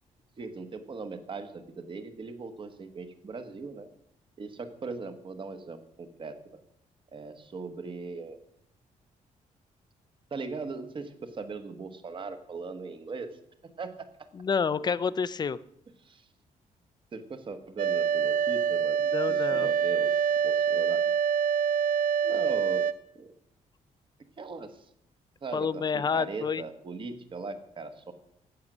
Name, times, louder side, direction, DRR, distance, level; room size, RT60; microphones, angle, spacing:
voice 1, 0.4-3.9 4.4-6.6 7.1-8.4 10.3-13.3 13.6-14.1 16.0-16.3 17.1-20.2 20.4-21.0 22.2-23.3 24.4-24.9 25.4-28.1, right 4 dB, 35° right, 9 dB, 1.2 m, -39 dB
voice 2, 14.3-15.6 19.1-19.7 25.5-26.6, left 6 dB, 30° left, 17 dB, 0.4 m, -29 dB
sound 1, 17.8-22.9, right 7 dB, 80° right, 0.6 m, -26 dB
17.0 x 6.5 x 6.1 m, 0.73 s
cardioid pair, 130°, 14 cm